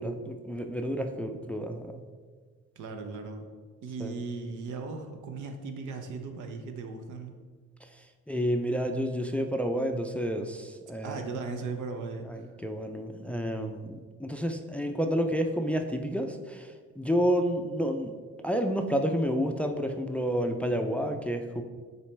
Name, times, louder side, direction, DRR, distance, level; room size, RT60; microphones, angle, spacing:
voice 1, 0.0-2.0 4.0-4.2 7.8-11.2 12.3-18.1 18.4-21.6, equal, 5° left, 5 dB, 0.4 m, -30 dB
voice 2, 2.8-3.5 3.8-7.3 11.0-12.5, right 4 dB, 80° right, 6 dB, 0.8 m, -37 dB
6.9 x 4.2 x 3.3 m, 1.5 s
cardioid pair, 90°, 30 cm